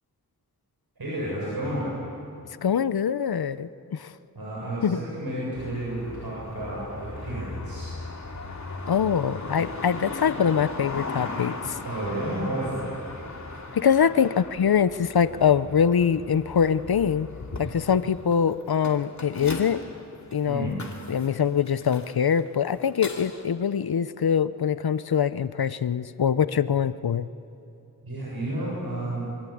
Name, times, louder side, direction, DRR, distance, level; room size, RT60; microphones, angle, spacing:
voice 1, 1.0-1.9 4.3-7.9 11.8-12.9 20.4-20.7 28.0-29.3, right 1 dB, 85° right, -6 dB, 7.5 m, -31 dB
voice 2, 2.6-4.1 4.8-5.0 8.9-11.8 13.7-17.3 17.6-19.8 20.3-20.8 21.1-27.3, left 7 dB, 90° left, 15 dB, 0.8 m, -23 dB
sound 1, 5.6-23.4, left 3 dB, 50° left, 2.6 m, -38 dB
25.5 x 23.5 x 8.6 m, 2.8 s
wide cardioid pair, 80°, 36 cm